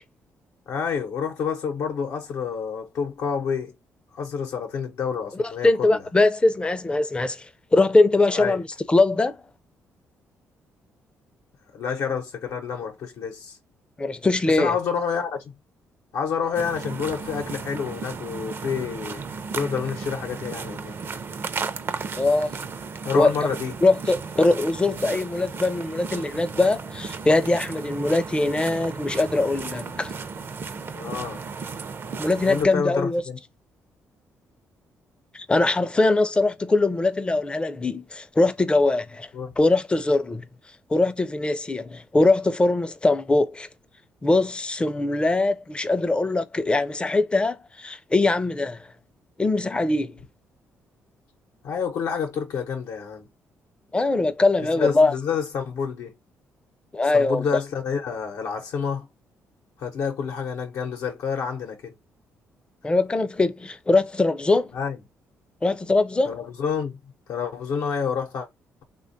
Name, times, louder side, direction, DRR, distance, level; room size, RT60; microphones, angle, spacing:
voice 1, 0.7-3.7 4.1-6.0 8.3-8.6 11.7-13.6 14.6-15.5 16.1-19.2 19.5-21.0 23.0-23.7 30.9-31.4 32.4-33.4 39.3-39.5 45.3-45.4 51.6-53.3 54.7-56.1 57.1-59.1 59.8-61.9 64.7-65.0 66.3-67.0 67.3-68.5, left 6 dB, 75° left, 0.7 m, -28 dB
voice 2, 5.4-7.5 7.7-9.4 14.0-14.8 22.2-22.5 23.1-23.3 23.8-30.1 32.2-33.2 35.3-39.3 39.6-40.4 40.9-43.7 44.2-48.9 49.4-50.2 53.9-55.1 56.9-57.4 62.8-64.7 65.6-66.4, left 2 dB, 20° left, 0.4 m, -22 dB
sound 1, 16.6-32.7, right 5 dB, 40° right, 0.5 m, -35 dB
3.2 x 2.2 x 2.5 m
cardioid pair, 90°, 6 cm